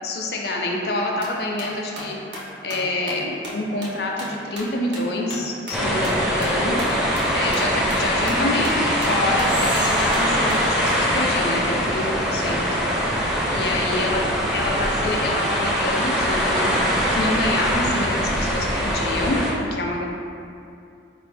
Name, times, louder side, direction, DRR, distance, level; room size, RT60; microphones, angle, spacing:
voice 1, 0.0-2.2 2.6-12.6 13.5-14.2 14.5-19.4 19.7-20.0, left 2 dB, 60° left, 0 dB, 0.5 m, -27 dB
sound 1, 1.2-10.9, equal, 85° right, 0.7 m, -38 dB
sound 2, 5.7-19.5, equal, 5° right, 0.4 m, -22 dB
Whispering, 9.4-12.6, right 3 dB, 45° right, 0.6 m, -38 dB
4.4 x 2.5 x 3.3 m, 2.5 s
head